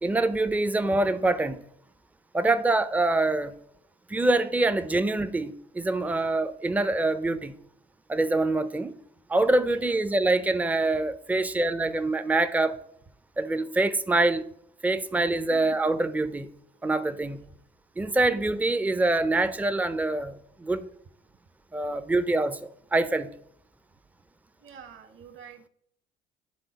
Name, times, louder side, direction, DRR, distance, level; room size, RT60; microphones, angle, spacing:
voice 1, 0.0-1.6 2.3-3.5 4.1-7.5 8.1-8.9 9.3-12.8 13.4-14.4 14.8-16.5 16.8-17.4 18.0-20.9 21.7-22.6 22.9-23.3, right 2 dB, 5° right, 0.5 m, -25 dB
voice 2, 15.5-15.8 24.6-25.7, right 7 dB, 45° right, 1.0 m, -48 dB
10.5 x 3.7 x 3.9 m
hypercardioid pair, 55°, 30 cm